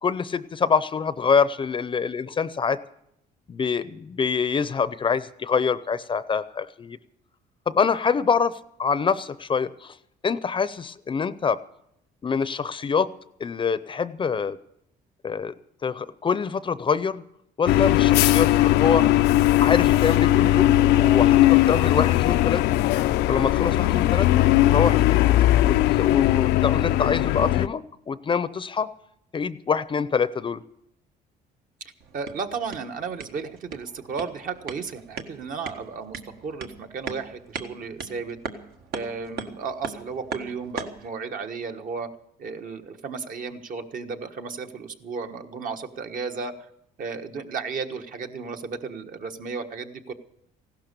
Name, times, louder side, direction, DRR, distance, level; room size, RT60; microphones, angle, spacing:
voice 1, 0.0-2.8 3.5-7.0 7.7-9.9 10.2-11.6 12.2-13.1 13.4-14.6 15.2-15.5 15.8-17.2 17.6-19.3 19.6-22.8 23.3-25.2 25.6-28.9 29.3-30.6, left 6 dB, 30° left, 15 dB, 0.6 m, -25 dB
sound 1, 17.7-27.7, left 15 dB, 85° left, 0.5 m, -19 dB
sound 2, 32.0-41.1, right 5 dB, 70° right, 1.5 m, -39 dB
voice 2, 32.1-38.4 38.9-42.1 42.4-46.5 47.0-50.1, right 5 dB, 55° right, 5 dB, 1.4 m, -34 dB
16.0 x 12.0 x 6.8 m, 0.77 s
cardioid pair, 110°, 17 cm